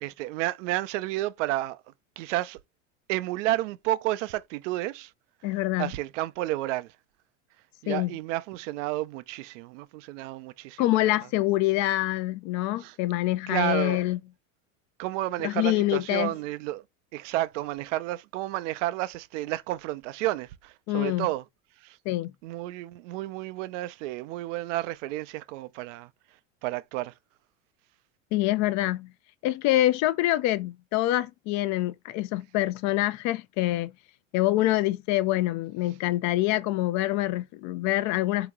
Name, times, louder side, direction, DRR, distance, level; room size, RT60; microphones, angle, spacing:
voice 1, 0.0-1.8 2.2-2.6 3.1-5.1 5.8-6.9 7.8-11.2 12.8-12.9 13.5-14.0 15.0-16.8 17.1-21.4 21.8-22.0 22.4-26.1 26.6-27.1, right 16 dB, 65° right, 0.6 m, -31 dB
voice 2, 5.4-5.9 7.9-8.1 10.8-14.2 15.4-16.3 20.9-21.3 22.1-22.3 28.3-29.1 29.4-33.9 34.3-38.5, left 16 dB, 45° left, 0.6 m, -25 dB
3.7 x 2.9 x 3.6 m
supercardioid pair, 110°, 39 cm